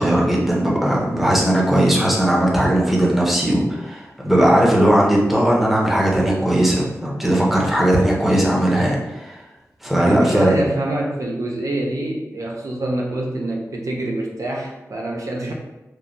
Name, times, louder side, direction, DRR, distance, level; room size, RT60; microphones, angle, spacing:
voice 1, 0.0-9.4 9.8-10.6, right 1 dB, 5° right, -4 dB, 0.6 m, -18 dB
voice 2, 10.0-15.5, right 1 dB, 70° right, 0 dB, 0.4 m, -25 dB
3.0 x 2.1 x 2.5 m, 1.0 s
wide cardioid pair, 85°, 6 cm